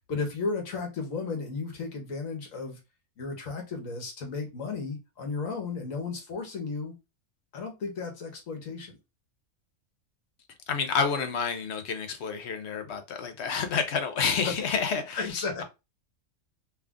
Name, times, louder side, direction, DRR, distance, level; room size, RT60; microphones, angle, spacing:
voice 1, 0.1-2.8 3.2-6.9 7.5-9.0 14.4-14.7 15.1-15.6, left 4 dB, 80° left, 1.5 m, -34 dB
voice 2, 10.7-15.6, left 6 dB, 60° left, 0.9 m, -29 dB
3.3 x 2.4 x 3.6 m
omnidirectional pair, 1.4 m